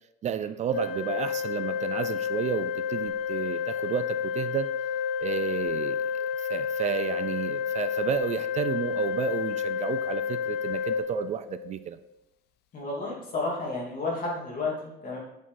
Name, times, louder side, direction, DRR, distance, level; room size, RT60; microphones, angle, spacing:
voice 1, 0.2-4.8 5.2-12.0, right 9 dB, 45° right, 12 dB, 0.4 m, -31 dB
Organ, 0.7-11.8, left 7 dB, 70° left, 0.7 m, -30 dB
voice 2, 12.7-15.2, left 3 dB, 55° left, -3 dB, 3.0 m, -31 dB
8.3 x 4.6 x 4.1 m, 0.84 s
cardioid pair, 110°, 17 cm